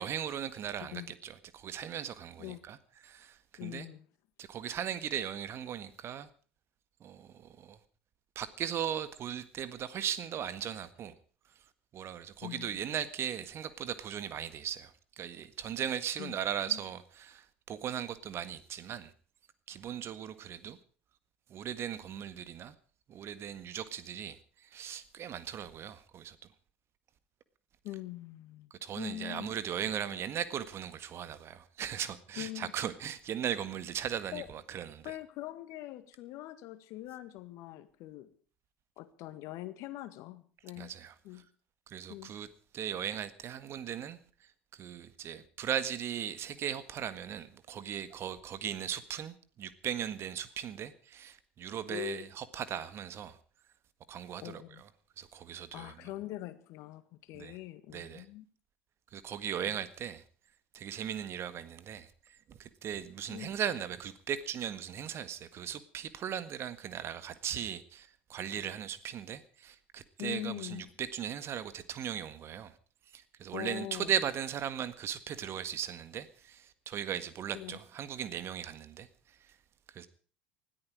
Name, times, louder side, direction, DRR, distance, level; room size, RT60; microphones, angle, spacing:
voice 1, 0.0-2.8 3.0-3.9 4.4-6.3 7.0-7.8 8.3-11.1 11.9-19.1 19.7-20.8 21.5-22.7 23.1-26.4 28.8-35.1 40.8-41.1 41.9-42.5 42.7-44.2 44.7-53.4 54.1-54.9 55.2-56.0 57.3-57.6 57.9-58.2 59.1-60.2 60.7-72.7 73.1-79.1 79.9-80.1, right 9 dB, 45° right, 1.7 m, -38 dB
voice 2, 0.8-1.1 2.4-2.6 3.6-4.0 12.4-12.7 16.2-16.4 16.7-16.8 27.8-28.7 29.0-29.5 32.4-32.7 34.3-34.5 35.0-38.3 39.0-40.9 41.2-41.5 42.1-42.3 51.9-52.3 54.4-54.8 55.7-58.4 59.7-59.8 63.3-63.5 70.2-70.8 73.5-74.1 77.5-77.8, left 16 dB, 55° left, 1.8 m, -42 dB
20.5 x 13.5 x 4.9 m
figure-of-eight pair, 70°, 6 cm